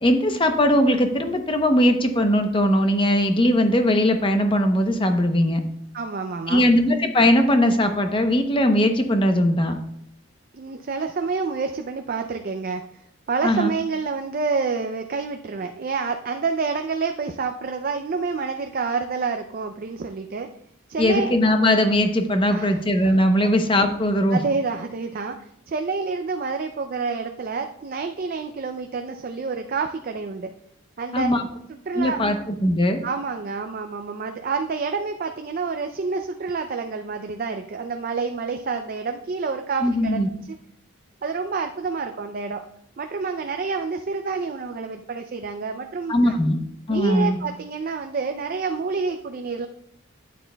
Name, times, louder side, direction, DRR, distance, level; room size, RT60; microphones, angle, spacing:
voice 1, 0.0-5.6 6.5-9.8 13.4-13.7 21.0-24.4 31.1-31.4 32.0-33.0 39.8-40.3 46.1-46.6 46.9-47.4, left 1 dB, 25° left, 6 dB, 0.7 m, -20 dB
voice 2, 5.9-6.7 10.5-20.5 20.9-21.3 22.5-22.8 23.4-23.5 24.3-30.5 31.0-31.3 31.9-32.2 33.0-40.2 41.2-42.6 43.0-46.4 46.9-49.7, right 4 dB, 40° right, 6 dB, 0.4 m, -28 dB
11.5 x 9.3 x 2.2 m, 0.74 s
head